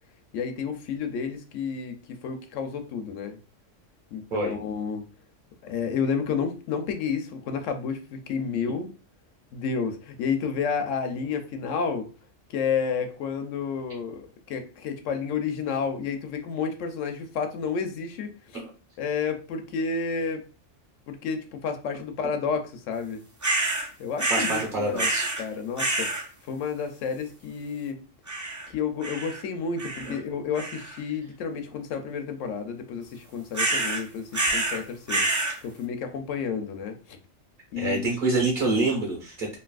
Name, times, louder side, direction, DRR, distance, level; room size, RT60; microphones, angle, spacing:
voice 1, 0.3-3.4 4.1-5.0 5.6-8.9 9.5-12.1 12.5-18.3 19.0-20.4 21.1-23.2 24.0-25.1 25.4-26.1 26.5-28.0 28.7-35.3 35.6-37.2 37.7-38.2, left 6 dB, 80° left, 6 dB, 0.9 m, -30 dB
sound 1, 23.4-23.9 24.2-24.7 25.0-25.4 25.8-26.2 28.3-28.7 29.0-29.4 29.8-30.2 30.6-31.0 33.5-34.0 34.3-34.8 35.1-35.6, right 2 dB, 25° right, 0.4 m, -27 dB
voice 2, 24.3-25.3 30.1-30.2 37.8-39.6, right 2 dB, 45° right, -1 dB, 1.3 m, -26 dB
3.2 x 2.6 x 2.3 m, 0.34 s
omnidirectional pair, 1.3 m